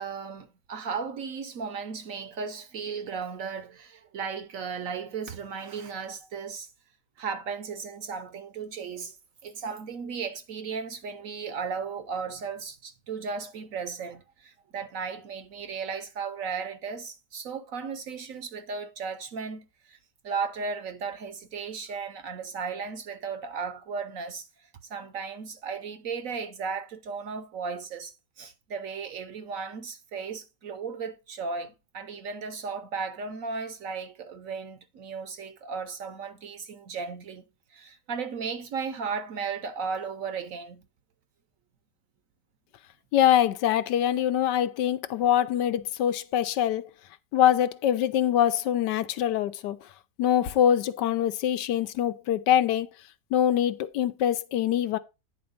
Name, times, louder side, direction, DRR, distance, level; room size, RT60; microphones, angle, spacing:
voice 1, 0.0-6.7 7.2-9.2 9.4-20.0 20.2-24.5 24.9-37.4 37.7-40.8, right 5 dB, 60° right, 1.0 m, -35 dB
voice 2, 43.1-46.8 47.3-49.8 50.2-52.9 53.3-55.0, left 10 dB, 80° left, 1.3 m, -24 dB
9.6 x 4.3 x 5.2 m
omnidirectional pair, 1.9 m